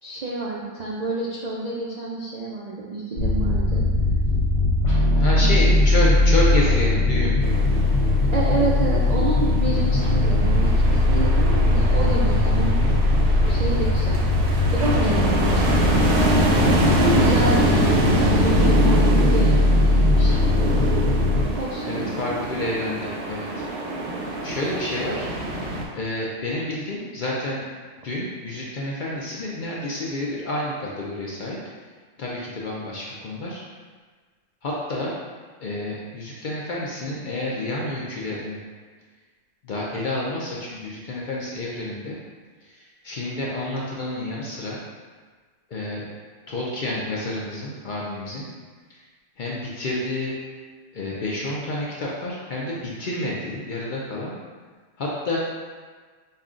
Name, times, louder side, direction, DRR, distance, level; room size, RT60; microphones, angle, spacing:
voice 1, 0.0-3.8 5.4-5.7 8.3-12.8 13.5-14.2 14.7-16.2 16.9-20.7 21.6-22.1, right 2 dB, 90° right, -5 dB, 0.3 m, -28 dB
sound 1, 3.2-21.5, left 2 dB, 80° left, 1.4 m, -20 dB
voice 2, 5.2-7.3 21.8-23.6 24.4-25.3 25.9-27.6 28.0-31.6 32.2-33.6 34.6-35.1 35.6-38.6 39.6-42.2 42.6-44.8 45.7-46.1 46.5-48.5 48.9-49.0 49.4-50.3 50.9-54.3 55.0-55.4, left 1 dB, 60° left, -5 dB, 0.5 m, -29 dB
sound 2, 7.4-25.9, right 1 dB, 65° right, 0.8 m, -25 dB
5.4 x 2.2 x 2.4 m, 1.5 s
omnidirectional pair, 1.3 m